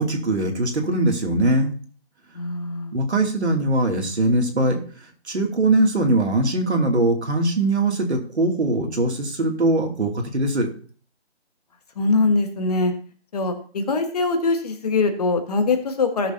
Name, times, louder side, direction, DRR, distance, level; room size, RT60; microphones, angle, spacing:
voice 1, 0.0-1.7 2.9-4.8 5.3-10.7, right 2 dB, 85° right, 2 dB, 2.8 m, -21 dB
voice 2, 2.3-2.9 12.0-12.9 13.3-16.3, left 3 dB, 35° left, 6 dB, 1.5 m, -22 dB
17.5 x 6.9 x 2.8 m, 0.42 s
figure-of-eight pair, 160°, 33 cm